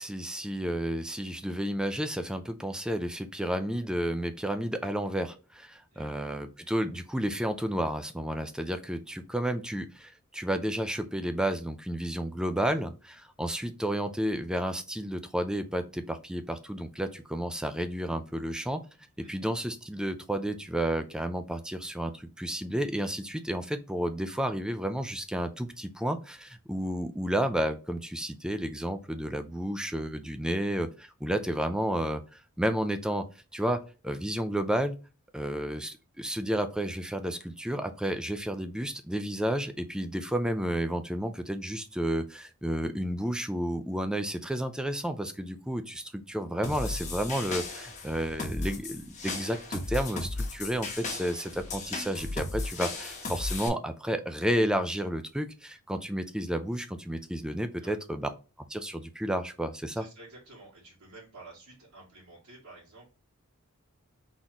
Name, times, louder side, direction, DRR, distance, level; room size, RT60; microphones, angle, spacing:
voice 1, 0.0-18.8 19.2-33.3 33.5-35.0 35.3-58.3 58.7-60.0, right 1 dB, 5° right, 8 dB, 0.4 m, -31 dB
sound 1, 46.6-53.7, left 2 dB, 35° left, 1.0 m, -36 dB
voice 2, 59.9-63.1, right 2 dB, 85° right, -10 dB, 2.2 m, -51 dB
4.1 x 3.7 x 2.9 m, 0.32 s
head